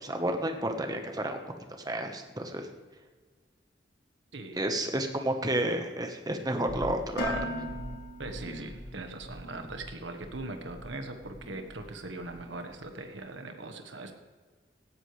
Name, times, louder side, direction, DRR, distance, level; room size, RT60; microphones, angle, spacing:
voice 1, 0.0-1.4 1.8-2.7 4.6-7.5, right 1 dB, 20° right, 5 dB, 1.3 m, -31 dB
sound 1, 6.5-12.0 12.2-12.9, equal, 25° left, 1.3 m, -43 dB
Dishes pots and pans, 7.2-9.2, equal, 60° left, 2.1 m, -38 dB
voice 2, 8.2-14.1, right 2 dB, 85° right, 5 dB, 1.5 m, -40 dB
17.5 x 13.0 x 3.4 m, 1.5 s
head